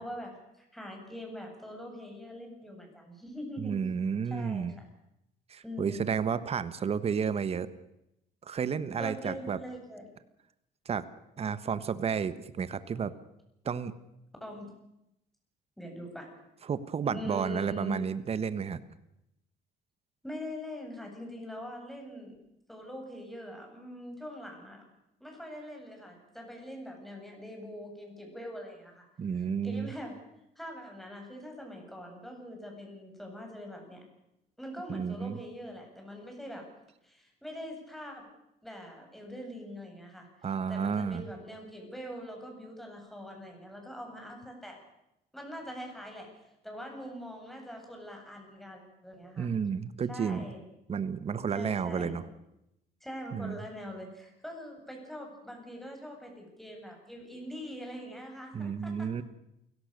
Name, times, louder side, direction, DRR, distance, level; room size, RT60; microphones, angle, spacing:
voice 1, 0.0-3.7 4.3-4.9 5.6-6.1 9.0-10.0 14.4-14.7 15.8-16.3 17.0-18.0 20.2-22.4 22.7-24.8 25.2-29.1 29.3-30.1 30.6-34.0 34.6-36.6 37.0-38.2 38.6-40.3 40.7-44.8 45.3-49.5 50.1-50.6 51.5-52.2 53.0-59.1, equal, ahead, 2 dB, 7.6 m, -43 dB
voice 2, 3.6-4.7 5.5-7.7 8.5-9.6 10.8-11.0 11.4-13.1 13.6-13.9 16.7-18.8 29.2-29.9 34.9-35.4 40.4-41.3 49.4-50.4 50.9-52.2 53.3-53.6 58.5-59.2, right 6 dB, 35° right, 14 dB, 1.4 m, -31 dB
29.0 x 17.5 x 6.8 m, 0.84 s
cardioid pair, 110°, 17 cm